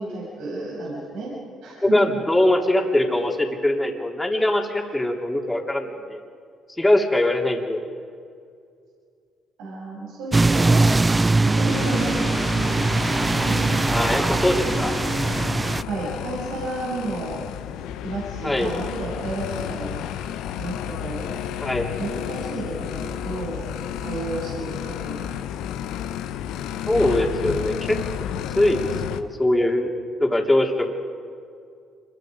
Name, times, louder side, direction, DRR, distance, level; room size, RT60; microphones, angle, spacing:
voice 1, 0.0-1.3 1.6-2.0 9.6-10.9 11.4-12.4 13.1-13.2 13.4-13.8 15.9-17.4 18.0-20.0 20.6-21.4 22.0-23.6 24.0-25.3, right 2 dB, 80° right, -6 dB, 7.9 m, -31 dB
voice 2, 1.8-6.2 6.8-7.8 13.9-15.0 18.4-18.7 21.6-21.9 26.9-28.0 28.5-29.9 30.2-30.9, left 1 dB, 15° left, 1 dB, 3.5 m, -22 dB
sound 1, 10.3-15.8, right 3 dB, 20° right, 0.4 m, -21 dB
sound 2, 11.7-29.2, left 10 dB, 80° left, 0.9 m, -32 dB
26.5 x 23.0 x 5.2 m, 2.3 s
supercardioid pair, 60°, 0 cm